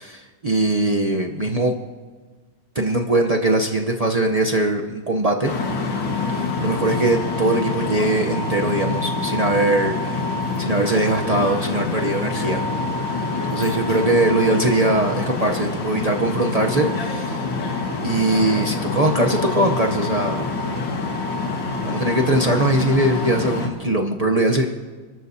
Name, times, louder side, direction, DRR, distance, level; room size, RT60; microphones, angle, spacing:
voice 1, 0.0-1.7 2.7-5.5 6.3-10.3 10.6-12.6 13.0-17.5 18.0-20.5 21.8-24.6, right 2 dB, 70° right, 1 dB, 0.3 m, -21 dB
sound 1, 5.4-23.7, left 3 dB, 75° left, 2.4 m, -26 dB
29.5 x 13.5 x 2.8 m, 1.4 s
omnidirectional pair, 2.0 m